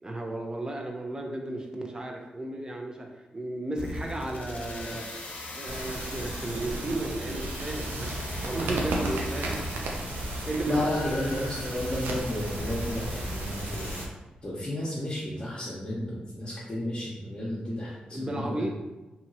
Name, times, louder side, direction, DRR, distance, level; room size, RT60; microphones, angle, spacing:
voice 1, 0.0-3.1 3.3-5.1 5.5-9.6 10.4-11.3 18.1-18.7, right 1 dB, 25° right, 1 dB, 0.6 m, -34 dB
sound 1, 3.8-14.0, left 1 dB, 70° left, 0.6 m, -38 dB
sound 2, 5.7-14.1, right 2 dB, 85° right, 0.4 m, -35 dB
voice 2, 10.6-13.9 14.4-18.7, left 1 dB, 35° left, -8 dB, 0.9 m, -32 dB
2.8 x 2.7 x 2.7 m, 1.1 s
cardioid pair, 55°, 3 cm